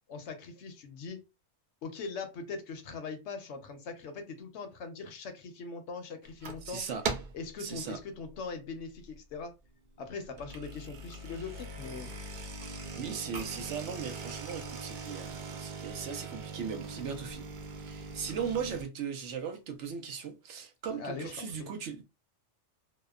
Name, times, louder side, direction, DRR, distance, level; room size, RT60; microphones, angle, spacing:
voice 1, 0.1-1.2 1.8-6.8 7.3-9.6 10.0-12.1 20.9-21.7, left 4 dB, 70° left, 0.9 m, -41 dB
sound 1, 6.2-6.7 7.0-7.5 7.9-8.2 8.8-8.9 9.1-9.2 10.2-18.8, right 4 dB, 60° right, 0.5 m, -40 dB
voice 2, 6.6-7.0 7.6-8.0 12.7-17.5 17.8-22.0, right 6 dB, 75° right, 0.9 m, -38 dB
2.8 x 2.1 x 2.3 m
omnidirectional pair, 1.2 m